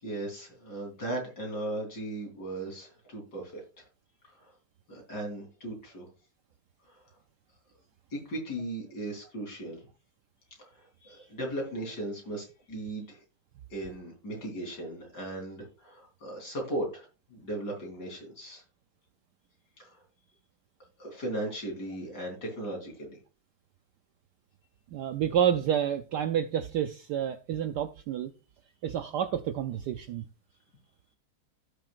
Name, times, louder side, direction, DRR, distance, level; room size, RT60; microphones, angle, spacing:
voice 1, 0.0-3.9 4.3-4.5 4.9-6.1 6.8-7.0 8.1-9.8 10.6-13.2 13.7-18.6 19.8-20.0 21.0-23.2, right 1 dB, 50° left, 4.3 m, -37 dB
voice 2, 24.9-28.3 28.8-30.2, right 9 dB, 70° right, 1.0 m, -29 dB
16.0 x 6.8 x 2.5 m
omnidirectional pair, 2.2 m